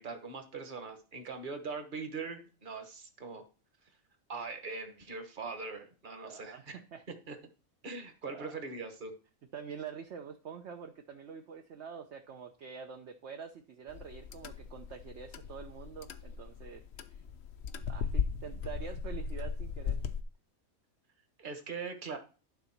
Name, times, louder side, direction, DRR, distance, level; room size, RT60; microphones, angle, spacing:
voice 1, 0.0-3.4 4.3-6.8 7.3-7.4 7.8-9.1 21.4-22.2, right 4 dB, 35° right, 6 dB, 1.4 m, -41 dB
voice 2, 6.2-7.0 8.3-8.5 9.5-17.2 17.9-20.0, right 7 dB, 60° right, 4 dB, 1.0 m, -46 dB
sound 1, 13.9-20.2, left 6 dB, 60° left, 0.9 m, -37 dB
12.0 x 4.0 x 5.9 m, 0.35 s
omnidirectional pair, 1.5 m